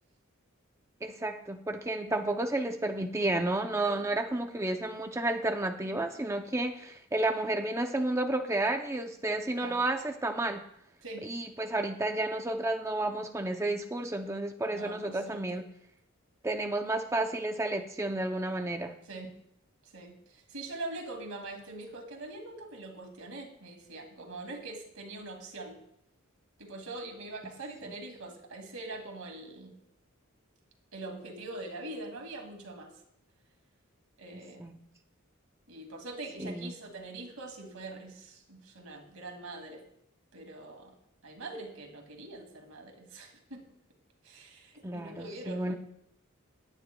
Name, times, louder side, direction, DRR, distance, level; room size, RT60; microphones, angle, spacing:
voice 1, 1.0-10.6 11.2-15.6 16.4-18.9 27.8-27.9 34.3-34.8 36.4-36.7 44.8-45.7, right 2 dB, 15° right, 5 dB, 0.6 m, -31 dB
voice 2, 14.6-15.6 19.1-19.3 19.8-25.8 26.6-29.8 30.9-32.9 34.2-34.7 35.7-39.8 40.3-40.9 41.2-43.6 44.2-45.8, right 2 dB, 85° right, 3 dB, 2.4 m, -43 dB
19.0 x 9.7 x 2.3 m, 0.75 s
head